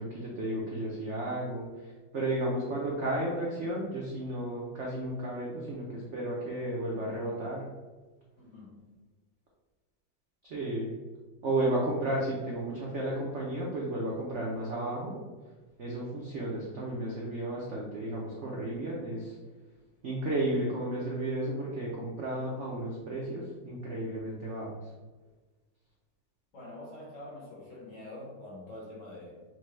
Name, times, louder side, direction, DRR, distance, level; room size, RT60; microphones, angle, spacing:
voice 1, 0.0-7.7 10.4-10.9 11.4-15.2 15.8-19.4 20.0-24.8, right 1 dB, 85° right, -4 dB, 0.6 m, -33 dB
voice 2, 8.4-8.8 26.5-29.4, left 1 dB, 50° left, -4 dB, 1.2 m, -45 dB
5.9 x 2.2 x 3.1 m, 1.3 s
omnidirectional pair, 2.2 m